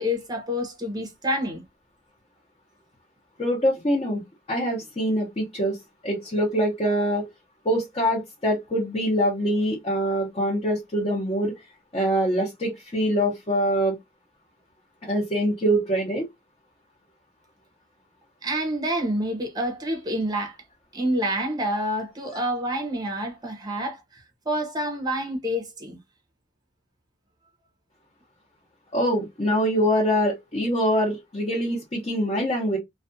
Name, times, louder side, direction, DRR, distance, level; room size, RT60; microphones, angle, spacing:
voice 1, 0.0-1.6 18.4-20.6 20.9-26.0, equal, 20° right, 0.7 m, -28 dB
voice 2, 3.4-4.2 4.5-5.8 6.0-7.3 7.6-11.6 11.9-14.0 15.1-16.3 28.9-32.8, equal, 30° left, 0.8 m, -24 dB
2.4 x 2.2 x 2.5 m
head